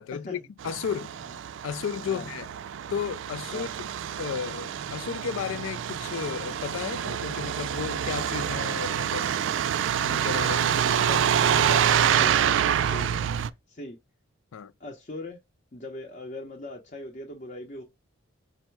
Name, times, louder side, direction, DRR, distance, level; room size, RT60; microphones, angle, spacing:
voice 1, 0.0-1.1 1.6-2.5 2.9-3.9 4.2-9.3 10.0-10.8 11.5-12.1 12.8-13.0 14.5-14.7, left 7 dB, 90° left, 0.3 m, -34 dB
Truck, 0.6-13.5, right 9 dB, 70° right, 0.3 m, -27 dB
voice 2, 10.7-11.2 11.6-11.8 12.2-12.6 12.9-13.2 13.7-14.0 14.8-15.4 15.7-17.8, left 2 dB, 40° left, 0.7 m, -40 dB
5.3 x 2.1 x 4.5 m
head